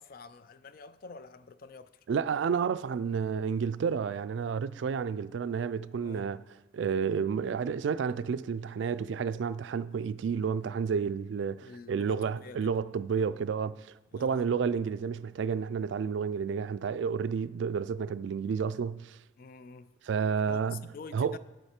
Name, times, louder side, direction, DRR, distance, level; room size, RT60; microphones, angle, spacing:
voice 1, 0.0-1.9 6.0-6.3 11.6-12.7 13.1-13.3 14.1-14.4 19.4-19.9 20.5-21.4, left 4 dB, 50° left, 0.4 m, -47 dB
voice 2, 2.1-6.4 6.7-19.2 20.0-20.8 21.1-21.4, right 6 dB, 70° right, 0.3 m, -31 dB
9.5 x 8.0 x 4.3 m
head